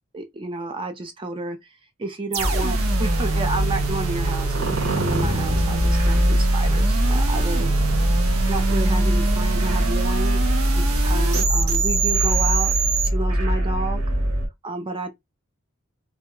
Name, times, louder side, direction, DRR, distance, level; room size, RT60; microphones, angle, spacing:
voice 1, 0.1-1.7 2.0-7.7 8.5-10.5 10.9-12.7 13.0-14.0 14.6-15.1, right 2 dB, 25° right, 0.4 m, -30 dB
sound 1, 2.3-13.1, right 5 dB, 85° right, 0.5 m, -27 dB
sound 2, 2.4-14.5, right 1 dB, 70° right, 0.9 m, -22 dB
2.2 x 2.1 x 2.8 m
head